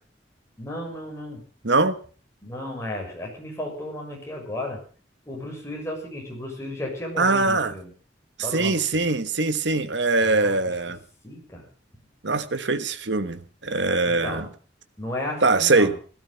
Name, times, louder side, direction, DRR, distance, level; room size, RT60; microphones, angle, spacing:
voice 1, 0.6-1.4 2.4-4.8 5.3-7.9 8.4-9.1 10.2-10.6 11.2-11.7 14.0-14.5 15.0-16.0, left 1 dB, 15° left, 6.6 m, -34 dB
voice 2, 1.6-2.0 7.2-7.7 8.5-11.0 12.2-14.4 15.4-15.9, right 3 dB, 65° right, 1.3 m, -22 dB
17.5 x 13.0 x 5.7 m
head